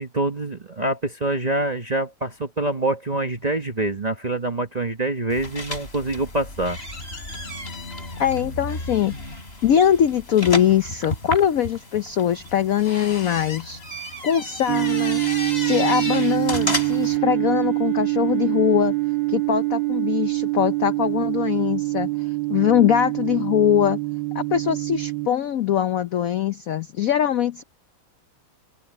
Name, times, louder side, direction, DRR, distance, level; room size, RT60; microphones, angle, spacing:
voice 1, 0.0-6.8, right 2 dB, 30° right, 0.8 m, -25 dB
sound 1, 5.3-17.2, left 2 dB, 30° left, 5.3 m, -33 dB
voice 2, 8.2-9.1 9.6-13.8 14.2-15.2 15.5-18.9 19.3-24.0 24.3-27.6, left 10 dB, 65° left, 0.8 m, -22 dB
sound 2, 14.7-25.3, right 22 dB, 85° right, 1.4 m, -24 dB
open air
omnidirectional pair, 2.2 m